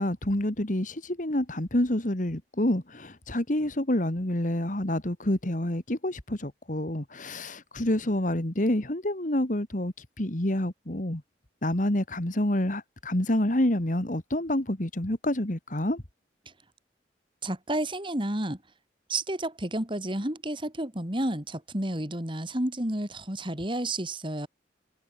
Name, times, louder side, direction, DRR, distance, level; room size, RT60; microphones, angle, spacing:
voice 1, 0.0-11.2 11.6-16.0, left 1 dB, 45° left, 2.2 m, -28 dB
voice 2, 17.4-18.6 19.1-24.5, right 1 dB, 30° right, 3.5 m, -31 dB
head